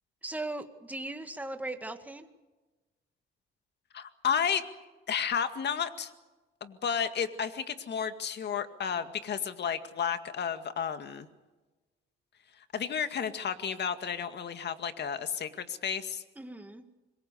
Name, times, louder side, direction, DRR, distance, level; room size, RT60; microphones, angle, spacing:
voice 1, 0.2-2.3 16.4-16.8, right 2 dB, 10° right, 7 dB, 2.0 m, -38 dB
voice 2, 3.9-4.6 5.1-6.1 6.6-11.3 12.7-16.2, left 7 dB, 60° left, 9 dB, 2.1 m, -32 dB
26.0 x 22.0 x 6.9 m, 1.2 s
cardioid pair, 90°, 20 cm